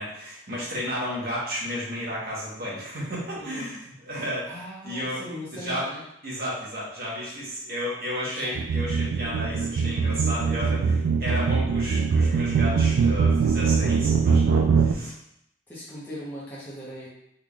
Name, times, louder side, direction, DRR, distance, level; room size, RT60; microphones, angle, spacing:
voice 1, 0.0-4.5 4.8-5.2 5.5-5.9 6.2-15.1, equal, 50° right, -6 dB, 1.2 m, -32 dB
voice 2, 3.4-3.7 4.5-6.0 8.3-8.6 15.7-17.1, equal, 10° left, -9 dB, 0.9 m, -39 dB
sound 1, 8.6-14.9, right 5 dB, 80° right, 0.3 m, -22 dB
3.6 x 3.5 x 2.4 m, 0.78 s
head